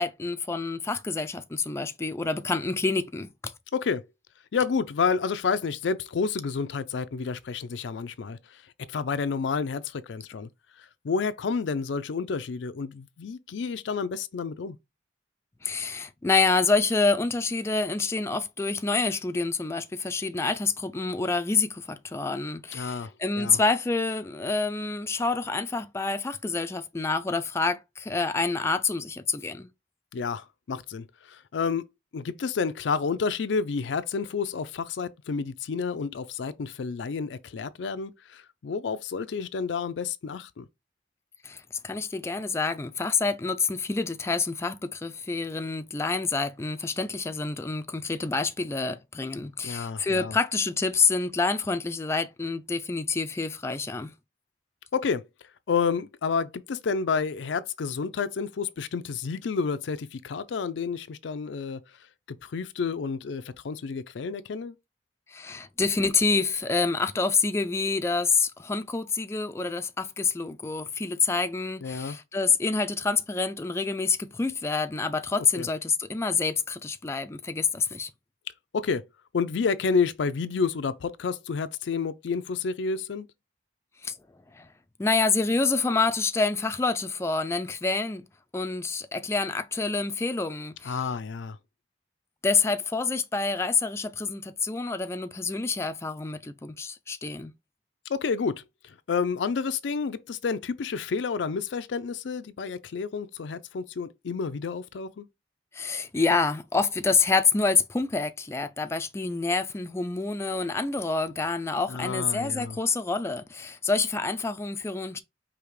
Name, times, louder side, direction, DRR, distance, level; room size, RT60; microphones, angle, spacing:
voice 1, 0.0-3.5 15.6-29.7 41.4-54.1 65.3-78.1 84.0-84.2 84.5-84.7 85.0-88.3 88.5-91.1 92.4-97.5 105.7-115.2, left 4 dB, 15° left, 0.3 m, -27 dB
voice 2, 4.5-8.4 8.9-10.5 11.0-14.8 22.7-23.1 23.4-23.6 30.1-31.8 32.1-40.6 49.6-50.4 54.9-55.2 55.7-61.8 62.3-64.8 71.8-72.2 75.5-75.7 78.7-79.0 79.3-83.3 90.8-91.6 98.1-105.3 111.9-112.8, left 5 dB, 90° left, 0.4 m, -30 dB
4.9 x 2.8 x 3.1 m
head